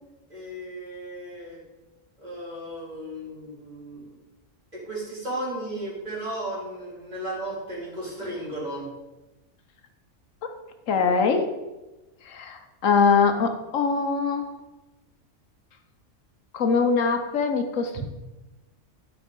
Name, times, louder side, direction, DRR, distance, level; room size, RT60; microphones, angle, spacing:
voice 1, 0.3-1.6 2.2-4.0 4.7-8.9 11.0-11.1, right 1 dB, 35° right, -5 dB, 3.5 m, -35 dB
voice 2, 10.9-11.5 12.3-14.5 16.5-18.0, left 5 dB, 80° left, 7 dB, 1.2 m, -22 dB
11.5 x 5.3 x 5.2 m, 1.1 s
omnidirectional pair, 1.3 m